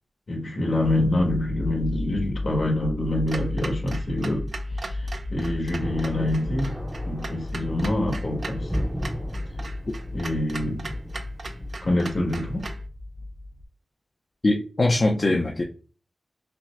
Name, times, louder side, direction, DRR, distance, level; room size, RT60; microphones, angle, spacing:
voice 1, 0.3-4.5 4.8-6.7 7.0-8.7 10.1-10.9 11.8-12.7, left 1 dB, 65° left, 1.5 m, -26 dB
sound 1, 0.8-13.6, left 2 dB, 80° left, 0.7 m, -34 dB
Clock, 3.3-12.9, right 3 dB, 65° right, 0.4 m, -39 dB
Thunder, 5.8-12.8, equal, 5° right, 0.6 m, -35 dB
voice 2, 14.4-15.6, left 2 dB, 45° left, 0.5 m, -21 dB
5.8 x 2.1 x 2.5 m
wide cardioid pair, 80°, 0 cm